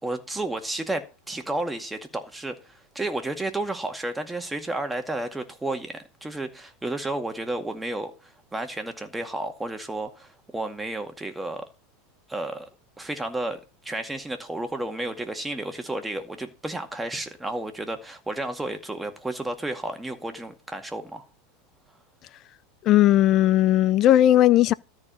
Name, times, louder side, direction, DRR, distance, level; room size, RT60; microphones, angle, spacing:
voice 1, 0.0-11.6 12.3-12.7 13.0-21.3, right 2 dB, 10° right, 2.1 m, -32 dB
voice 2, 22.8-24.7, left 13 dB, 45° left, 0.6 m, -17 dB
13.5 x 4.7 x 6.9 m
hypercardioid pair, 105°, 0 cm